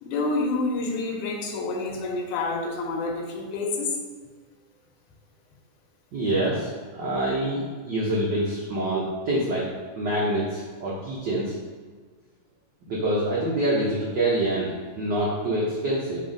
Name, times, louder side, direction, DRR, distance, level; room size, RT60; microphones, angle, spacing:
voice 1, 0.0-4.0, left 3 dB, 85° left, 1 dB, 2.3 m, -28 dB
voice 2, 6.1-9.7 9.9-11.5 12.9-16.2, right 1 dB, 85° right, -6 dB, 0.9 m, -26 dB
4.4 x 4.2 x 5.1 m, 1.5 s
omnidirectional pair, 3.4 m